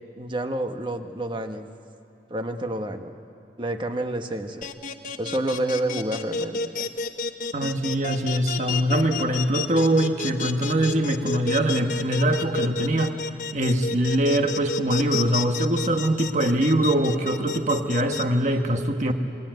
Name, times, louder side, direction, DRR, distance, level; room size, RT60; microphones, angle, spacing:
voice 1, 0.2-1.7 2.3-3.1 3.6-4.7 5.2-6.9 19.0-19.1, right 1 dB, 30° right, 6 dB, 1.3 m, -29 dB
sound 1, 4.6-18.2, left 4 dB, 45° left, 1.1 m, -30 dB
voice 2, 7.5-13.2 13.5-19.1, right 1 dB, 45° right, 5 dB, 1.6 m, -23 dB
27.5 x 20.0 x 9.4 m, 2.6 s
head